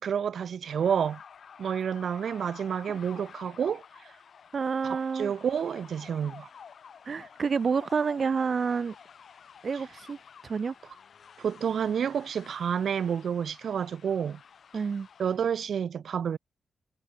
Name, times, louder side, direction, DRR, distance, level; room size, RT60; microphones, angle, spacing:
voice 1, 0.0-1.2 1.6-4.1 4.8-6.5 11.4-14.4 15.2-16.4, right 7 dB, 75° right, 2.2 m, -29 dB
sound 1, 0.6-15.5, left 7 dB, 65° left, 3.5 m, -51 dB
voice 2, 4.5-5.3 7.0-8.9 9.6-10.2 10.4-10.7 14.7-15.1, right 5 dB, 50° right, 1.6 m, -28 dB
wide cardioid pair, 100°, 0 cm